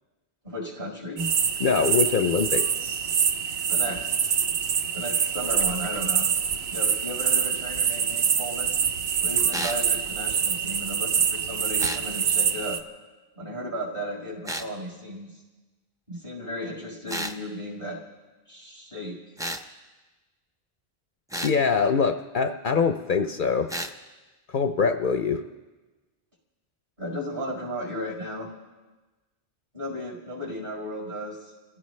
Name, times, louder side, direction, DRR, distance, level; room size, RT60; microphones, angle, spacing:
voice 1, 0.4-1.2 3.7-4.1 4.9-6.3 6.7-8.7 9.2-12.8 13.3-15.4 16.1-18.0 18.5-19.1 27.0-28.5 29.7-31.5, equal, 50° right, -3 dB, 5.1 m, -35 dB
sound 1, 1.2-12.8, right 7 dB, 70° right, 1.0 m, -25 dB
voice 2, 1.6-3.1 21.4-23.7 24.5-25.4, left 5 dB, 55° left, 7 dB, 0.7 m, -24 dB
sound 2, 9.5-9.8 11.8-12.1 14.5-14.7 17.1-17.4 19.4-19.7 21.3-21.6 23.7-23.9, right 1 dB, 5° right, 0.5 m, -32 dB
28.0 x 16.0 x 3.2 m, 1.2 s
omnidirectional pair, 1.1 m